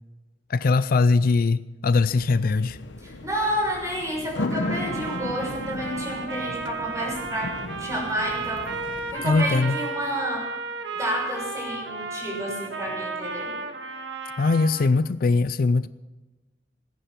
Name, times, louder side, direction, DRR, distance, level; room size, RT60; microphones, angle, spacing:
voice 1, 0.5-2.8 9.2-9.8 14.4-15.9, left 3 dB, 55° left, 0.4 m, -21 dB
sound 1, 2.1-9.5, left 2 dB, 85° left, 1.1 m, -35 dB
voice 2, 3.0-8.7 9.1-10.5 11.0-13.5, equal, 20° right, 6.4 m, -30 dB
Trumpet, 4.5-14.9, right 4 dB, 80° right, 1.7 m, -34 dB
20.0 x 10.0 x 5.9 m
head